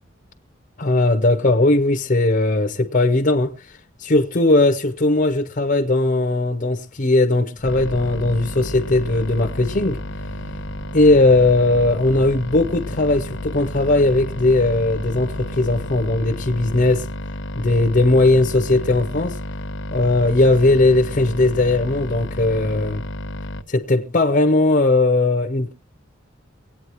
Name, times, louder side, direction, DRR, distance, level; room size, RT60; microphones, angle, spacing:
voice 1, 0.8-3.5 4.0-10.0 10.9-17.1 17.6-19.4 19.9-23.0 23.7-25.7, left 2 dB, 45° left, 0.8 m, -18 dB
sound 1, 7.6-23.6, left 1 dB, 75° left, 0.9 m, -31 dB
sound 2, 7.6-16.1, left 1 dB, 75° right, 1.2 m, -41 dB
24.0 x 8.9 x 3.0 m
head